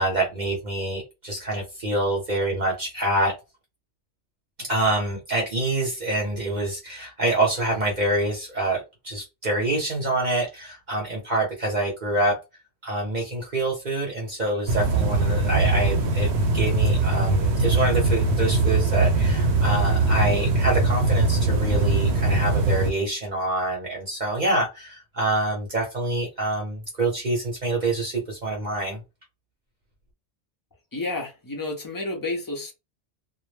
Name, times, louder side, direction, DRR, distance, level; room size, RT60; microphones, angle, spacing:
voice 1, 0.0-3.3 4.6-12.4 12.8-16.3 16.5-29.0, right 2 dB, 45° right, 0.7 m, -26 dB
sound 1, 14.7-22.9, right 2 dB, 80° right, 0.9 m, -21 dB
voice 2, 30.9-32.7, left 2 dB, 30° left, 0.4 m, -30 dB
2.2 x 2.0 x 3.2 m
omnidirectional pair, 1.1 m